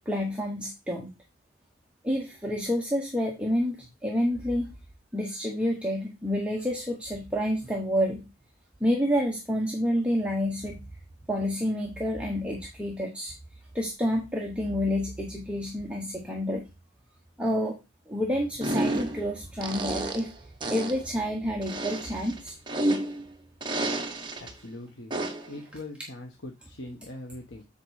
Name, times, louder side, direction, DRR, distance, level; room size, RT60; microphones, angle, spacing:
voice 1, 0.0-1.1 2.0-4.7 5.1-8.2 8.8-10.8 11.3-13.3 13.7-16.6 17.4-17.8 18.1-20.3 20.7-22.5 25.5-25.6, equal, 5° right, -1 dB, 1.2 m, -29 dB
sound 1, 18.6-19.3 19.6-20.3 20.6-21.0 21.6-23.3 23.6-24.5 25.1-25.5, right 1 dB, 25° right, 1.4 m, -30 dB
voice 2, 24.4-25.1 25.5-27.6, left 2 dB, 75° left, 2 dB, 1.3 m, -41 dB
8.6 x 3.9 x 6.5 m, 0.26 s
head